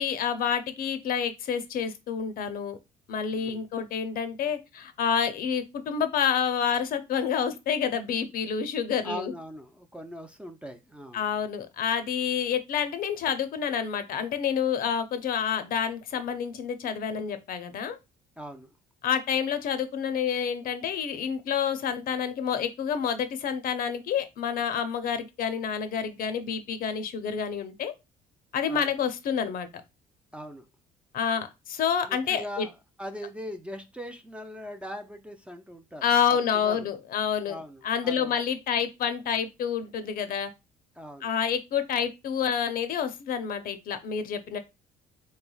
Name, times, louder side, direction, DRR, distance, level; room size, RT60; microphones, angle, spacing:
voice 1, 0.0-2.8 3.1-9.3 11.1-18.0 19.0-27.9 28.5-29.7 31.1-32.7 36.0-37.6 37.8-40.5 41.2-44.6, left 7 dB, 60° left, 0.6 m, -28 dB
voice 2, 3.3-3.7 9.0-11.2 18.4-18.7 28.7-28.9 30.3-30.7 32.1-36.9 37.5-38.4 41.0-41.3, equal, 5° right, 0.4 m, -41 dB
3.4 x 3.2 x 2.3 m
cardioid pair, 110°, 17 cm